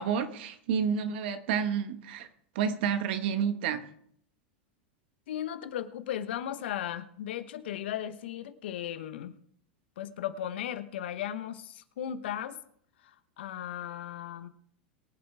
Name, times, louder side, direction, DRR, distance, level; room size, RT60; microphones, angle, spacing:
voice 1, 0.0-2.3 2.5-3.8, right 7 dB, 65° right, 9 dB, 1.5 m, -30 dB
voice 2, 5.3-9.3 10.0-12.6 13.0-14.5, left 10 dB, 75° left, 11 dB, 1.1 m, -36 dB
23.0 x 8.0 x 3.4 m, 0.66 s
hypercardioid pair, 100°, 6 cm